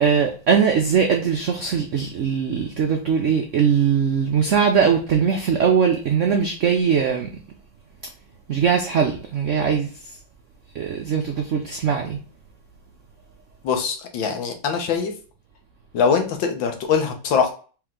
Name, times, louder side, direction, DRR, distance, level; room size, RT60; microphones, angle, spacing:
voice 1, 0.0-7.3 8.5-9.9 10.7-12.2, right 7 dB, 85° right, 0.6 m, -20 dB
voice 2, 13.6-15.1 15.9-17.5, left 6 dB, 80° left, 1.7 m, -22 dB
4.6 x 3.0 x 3.6 m
omnidirectional pair, 2.1 m